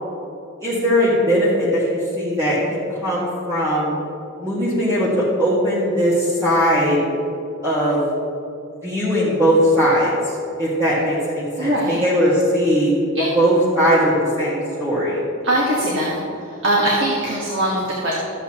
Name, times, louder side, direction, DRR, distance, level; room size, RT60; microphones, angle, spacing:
voice 1, 0.6-3.9 4.4-7.0 7.6-8.0 8.8-12.9 13.3-15.2, equal, 15° right, -10 dB, 1.8 m, -19 dB
voice 2, 11.6-12.0 13.1-13.3 15.4-16.2 16.4-18.1, right 1 dB, 65° right, -4 dB, 1.6 m, -21 dB
14.0 x 8.1 x 3.0 m, 2.6 s
head